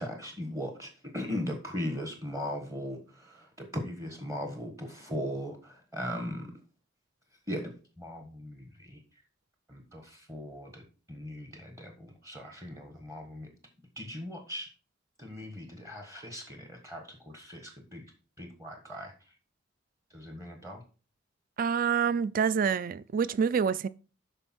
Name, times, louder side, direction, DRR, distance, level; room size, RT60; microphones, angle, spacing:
voice 1, 0.0-6.5 7.5-7.7 8.0-9.0 9.7-13.5 14.0-14.7 15.2-18.0 18.4-19.3 20.1-20.8, equal, 15° right, 1.4 m, -39 dB
voice 2, 21.6-23.9, right 6 dB, 45° right, 0.4 m, -27 dB
12.0 x 4.5 x 4.4 m
head